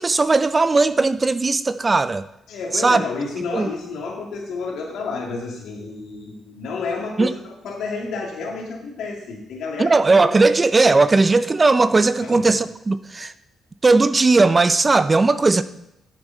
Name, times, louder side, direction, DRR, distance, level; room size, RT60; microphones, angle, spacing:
voice 1, 0.0-2.2 2.7-3.0 3.5-3.7 7.2-7.3 9.8-13.3 13.8-15.6, right 3 dB, 25° right, 0.4 m, -17 dB
voice 2, 2.5-10.3 10.9-11.2 12.2-12.5, left 4 dB, 85° left, 2.6 m, -30 dB
11.5 x 7.2 x 4.2 m
cardioid pair, 120°, 0 cm